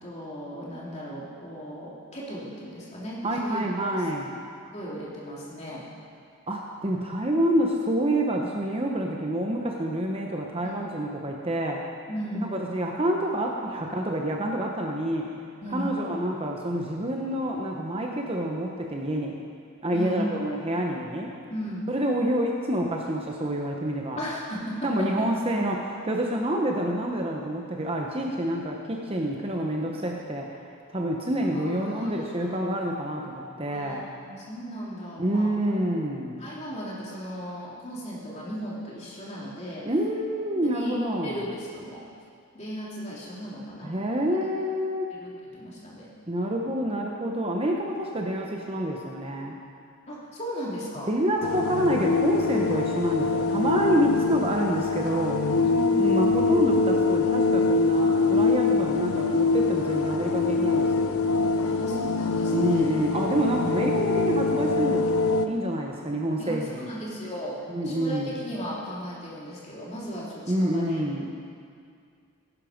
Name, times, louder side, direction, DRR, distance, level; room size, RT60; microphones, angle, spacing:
voice 1, 0.0-3.9 4.6-5.8 10.6-10.9 12.1-12.5 15.6-16.0 19.9-20.3 21.5-21.9 24.2-25.3 31.5-32.3 33.7-35.5 36.4-39.9 40.5-41.0 41.2-42.0 42.5-44.2 45.2-46.1 50.1-51.1 55.6-55.9 61.6-62.9 66.4-67.6 67.8-71.0, equal, 30° left, -6 dB, 3.1 m, -36 dB
voice 2, 3.2-4.4 6.5-11.9 12.4-15.3 15.7-19.3 19.8-21.3 21.9-24.2 24.8-30.6 30.9-34.1 35.2-36.4 39.8-41.4 43.8-45.1 46.3-49.6 51.1-55.5 56.0-61.1 62.5-65.1 65.5-66.9 67.7-68.4 70.5-71.4, right 1 dB, 25° right, 0 dB, 0.9 m, -27 dB
sound 1, 51.4-65.5, left 3 dB, 80° left, 0.8 m, -24 dB
17.5 x 11.0 x 5.2 m, 2.3 s
head